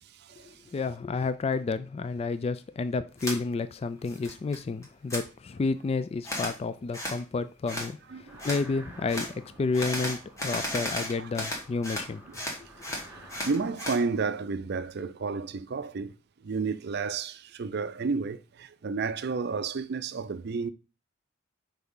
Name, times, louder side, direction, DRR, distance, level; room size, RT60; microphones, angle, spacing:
voice 1, 0.7-12.2, left 4 dB, 30° left, 0.3 m, -30 dB
sound 1, 3.2-3.4 3.8-4.6 4.8-5.2 6.2-6.6 6.9-7.2 7.7-7.9 8.4-8.6 9.1-9.3 9.7-12.1 12.3-14.0, left 1 dB, 15° left, 1.6 m, -34 dB
voice 2, 8.1-8.5 11.2-11.3 12.3-12.4 13.4-16.1 16.4-20.7, right 4 dB, 55° right, 0.5 m, -31 dB
sound 2, 8.3-13.8, right 1 dB, 10° right, 1.5 m, -51 dB
5.8 x 3.5 x 5.5 m
head